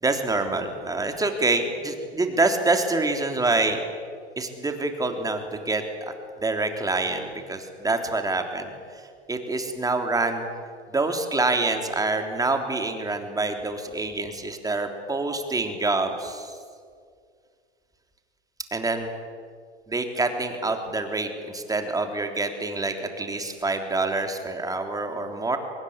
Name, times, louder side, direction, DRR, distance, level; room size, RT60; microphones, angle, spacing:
voice 1, 0.0-3.8 4.4-6.1 6.4-10.5 10.9-16.6 18.7-19.1 19.9-25.6, right 3 dB, 10° right, 5 dB, 3.4 m, -26 dB
24.5 x 21.5 x 9.7 m, 2.1 s
hypercardioid pair, 110°, 35 cm